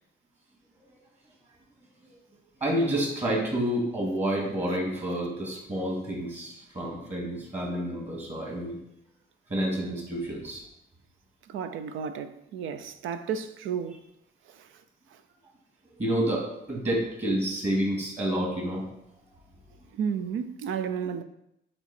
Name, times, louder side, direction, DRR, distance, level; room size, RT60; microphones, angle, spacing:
voice 1, 2.6-8.8 9.5-10.6 16.0-18.8, right 1 dB, 35° right, 2.4 m, -29 dB
voice 2, 11.5-14.0 14.5-14.7 19.9-21.2, right 7 dB, 85° right, 0.6 m, -32 dB
8.7 x 3.1 x 4.3 m
cardioid pair, 90°, 20 cm